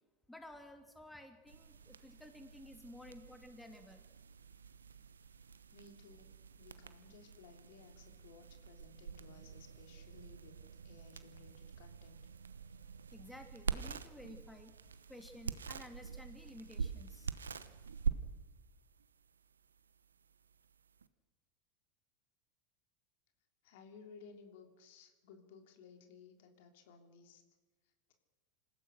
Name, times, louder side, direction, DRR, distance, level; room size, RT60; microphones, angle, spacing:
voice 1, 0.3-4.0 13.1-14.7 15.1-17.3, left 1 dB, 5° left, 5 dB, 2.9 m, -53 dB
sound 1, 1.5-21.1, right 6 dB, 85° right, 1.0 m, -45 dB
voice 2, 5.7-10.6 10.8-12.2 23.6-27.4, left 5 dB, 65° left, 5 dB, 3.1 m, -58 dB
27.0 x 16.0 x 6.5 m, 1.2 s
hypercardioid pair, 90°, 0 cm